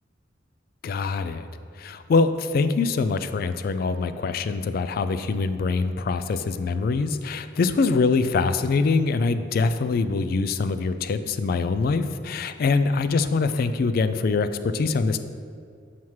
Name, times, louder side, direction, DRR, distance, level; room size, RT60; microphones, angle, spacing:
voice 1, 0.8-1.4 1.8-15.2, left 4 dB, 55° left, 11 dB, 0.3 m, -24 dB
7.3 x 5.8 x 3.1 m, 2.4 s
head